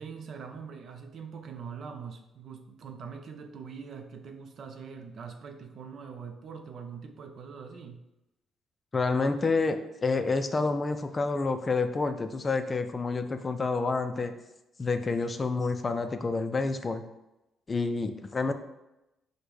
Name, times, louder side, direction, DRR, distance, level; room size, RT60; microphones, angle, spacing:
voice 1, 0.0-8.0, right 6 dB, 60° right, 6 dB, 0.5 m, -43 dB
voice 2, 8.9-14.3 14.8-17.0 17.7-18.5, left 3 dB, 30° left, 8 dB, 0.4 m, -28 dB
5.1 x 2.2 x 4.7 m, 0.93 s
cardioid pair, 90°, 0 cm